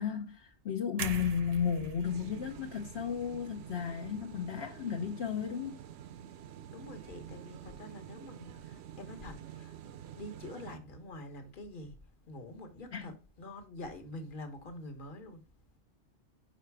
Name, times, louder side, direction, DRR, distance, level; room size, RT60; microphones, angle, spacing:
voice 1, 0.0-5.8 12.9-13.1, left 7 dB, 70° left, 1.0 m, -34 dB
sound 1, 1.0-5.0 5.4-5.6, right 7 dB, 50° right, 0.4 m, -44 dB
sound 2, 2.0-10.8, right 10 dB, 70° right, 0.8 m, -48 dB
voice 2, 6.7-9.7 10.1-12.0 12.3-15.4, left 1 dB, 50° left, 1.3 m, -46 dB
5.8 x 4.9 x 4.6 m
omnidirectional pair, 1.2 m